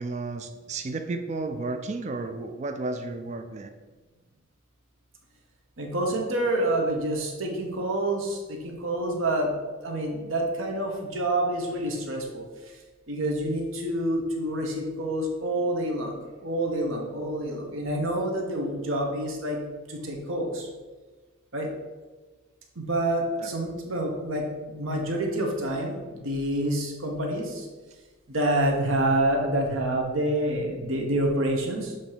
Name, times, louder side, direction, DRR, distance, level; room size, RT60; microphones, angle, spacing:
voice 1, 0.0-3.7 23.4-23.5, right 3 dB, 35° right, 7 dB, 0.3 m, -32 dB
voice 2, 5.8-9.5 9.8-12.8 13.1-19.6 19.9-20.7 21.5-21.7 22.7-27.7 28.3-31.9, right 1 dB, 75° right, 1 dB, 1.2 m, -27 dB
7.3 x 2.9 x 4.9 m, 1.3 s
head